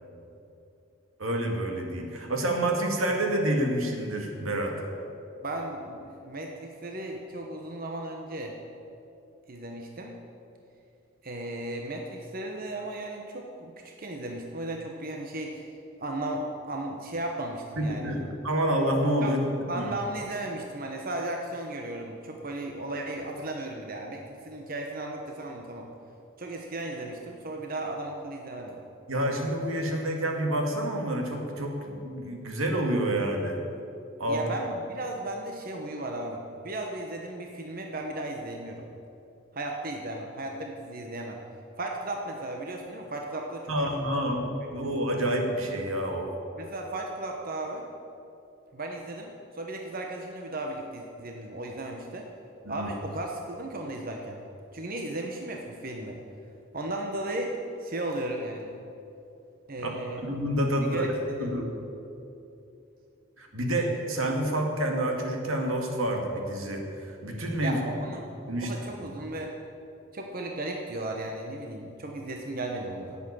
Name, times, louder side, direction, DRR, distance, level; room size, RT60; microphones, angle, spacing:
voice 1, 1.2-4.8 17.8-19.4 19.7-19.9 29.1-33.6 34.2-34.4 43.7-46.4 52.6-52.9 59.8-61.1 61.4-61.7 63.4-67.8 68.5-68.7, right 1 dB, 80° right, 2 dB, 2.1 m, -28 dB
voice 2, 5.4-8.5 9.5-10.2 11.2-15.7 16.0-18.2 19.2-25.9 26.4-28.8 34.3-38.9 39.5-41.4 41.8-43.7 44.0-44.4 46.6-47.9 48.7-52.3 52.7-54.4 54.7-56.2 56.7-58.8 59.7-60.3 60.8-61.1 61.4-61.6 67.6-68.3 68.6-69.5 70.1-73.2, right 1 dB, 45° right, 2 dB, 1.0 m, -35 dB
11.0 x 8.4 x 9.9 m, 2.7 s
head